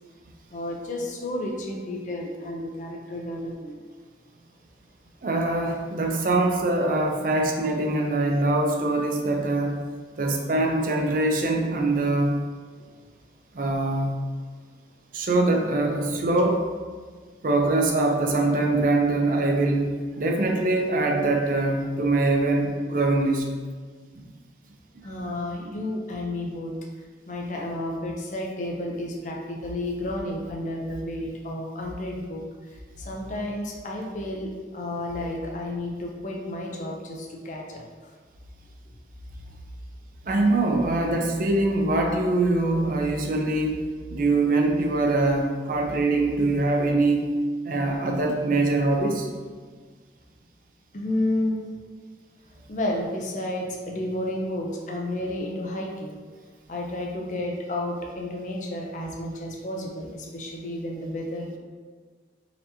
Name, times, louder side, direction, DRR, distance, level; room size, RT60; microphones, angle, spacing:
voice 1, 0.5-3.8 25.0-26.7 27.3-37.8 50.9-51.6 52.7-56.2 56.7-61.6, left 1 dB, 45° left, 0 dB, 0.5 m, -31 dB
voice 2, 5.2-9.7 10.2-12.3 13.5-14.1 15.1-16.7 17.4-19.9 20.2-23.4 24.2-24.3 24.9-25.0 35.2-35.3 40.3-43.8 44.1-47.3 47.6-49.3, right 2 dB, 50° right, 1 dB, 0.5 m, -23 dB
4.1 x 2.8 x 2.7 m, 1.5 s
head